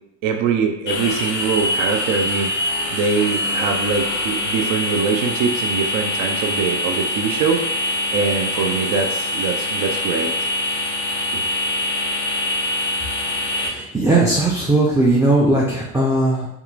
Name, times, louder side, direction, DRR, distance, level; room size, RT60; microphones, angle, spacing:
voice 1, 0.2-2.5 2.9-10.3 11.3-11.4, right 5 dB, 55° right, 4 dB, 0.6 m, -23 dB
sound 1, 0.9-13.7, left 1 dB, 30° left, 0.6 m, -24 dB
voice 2, 13.5-16.5, right 2 dB, 5° right, -5 dB, 0.5 m, -18 dB
2.8 x 2.4 x 2.4 m, 0.82 s
hypercardioid pair, 65°, 38 cm